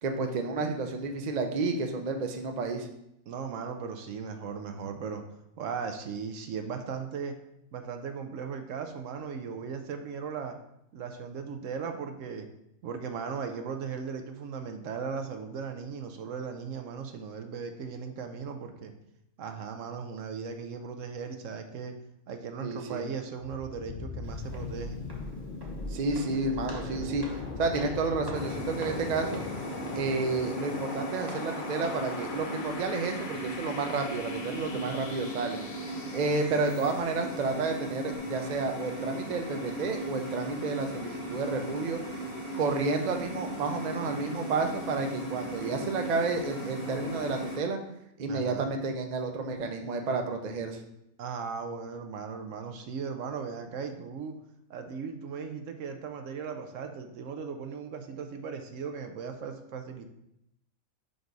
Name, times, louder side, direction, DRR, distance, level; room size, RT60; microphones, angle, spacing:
voice 1, 0.0-2.9 22.6-23.0 25.9-29.4 30.0-35.6 36.1-42.0 42.6-47.8 48.2-50.8, right 3 dB, 45° right, 4 dB, 0.6 m, -31 dB
voice 2, 3.3-5.2 5.6-7.4 7.7-10.6 10.9-12.5 12.8-18.9 19.4-22.0 22.3-25.0 48.2-48.7 51.2-54.4 54.7-60.1, right 6 dB, 70° right, 6 dB, 1.0 m, -37 dB
sound 1, 23.4-37.2, left 4 dB, 50° left, 0.6 m, -40 dB
Walk footsteps, 24.2-32.2, right 1 dB, 20° right, 0.9 m, -48 dB
sound 2, 28.3-47.6, right 1 dB, 85° left, 1.8 m, -38 dB
5.3 x 4.6 x 3.9 m, 0.81 s
omnidirectional pair, 1.4 m